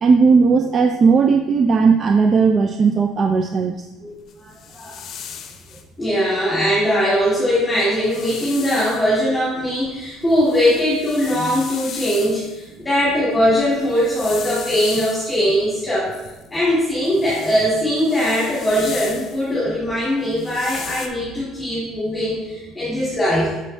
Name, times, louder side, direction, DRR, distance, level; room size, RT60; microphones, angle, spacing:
voice 1, 0.0-3.8, right 5 dB, 35° right, 5 dB, 0.4 m, -16 dB
voice 2, 4.0-5.0 6.0-16.1 16.5-23.6, equal, 15° left, -8 dB, 2.1 m, -20 dB
sound 1, 4.3-5.8 7.2-7.3 7.6-9.1 9.7-12.7 13.6-15.5 16.1-19.5 20.2-21.1, left 8 dB, 50° left, 0.7 m, -36 dB
6.3 x 5.4 x 3.3 m, 1.1 s
cardioid pair, 120°, 0 cm